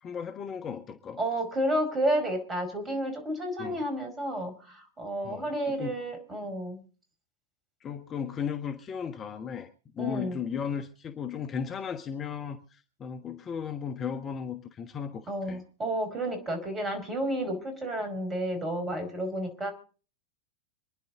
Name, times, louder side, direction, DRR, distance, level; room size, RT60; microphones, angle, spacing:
voice 1, 0.0-1.2 3.6-3.8 5.2-6.0 7.8-9.7 9.9-15.6, left 7 dB, 25° left, 7 dB, 1.3 m, -36 dB
voice 2, 1.2-6.8 10.0-10.4 15.3-19.7, right 1 dB, 20° right, 6 dB, 5.0 m, -31 dB
27.0 x 10.5 x 3.8 m, 0.38 s
figure-of-eight pair, 90°, 0 cm